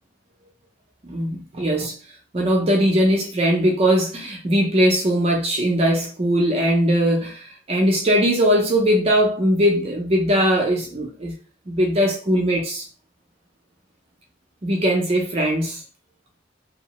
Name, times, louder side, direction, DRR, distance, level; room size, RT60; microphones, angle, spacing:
voice 1, 1.0-1.9 2.3-11.3 11.7-12.9 14.6-15.8, equal, 30° right, 0.5 m, -20 dB
2.7 x 2.0 x 2.9 m
head